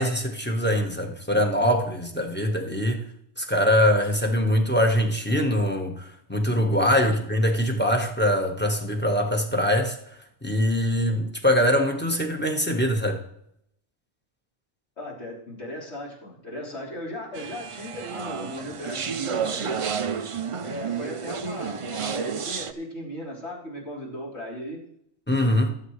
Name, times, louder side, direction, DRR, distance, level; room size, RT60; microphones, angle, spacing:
voice 1, 0.0-3.0 3.4-10.0 10.4-13.2 25.3-25.7, equal, 10° left, 3 dB, 1.3 m, -23 dB
voice 2, 15.0-19.9 20.6-24.8, left 1 dB, 60° left, -5 dB, 4.0 m, -37 dB
sound 1, 17.3-22.7, right 6 dB, 55° right, 0.3 m, -31 dB
18.5 x 8.4 x 3.3 m, 0.73 s
omnidirectional pair, 1.3 m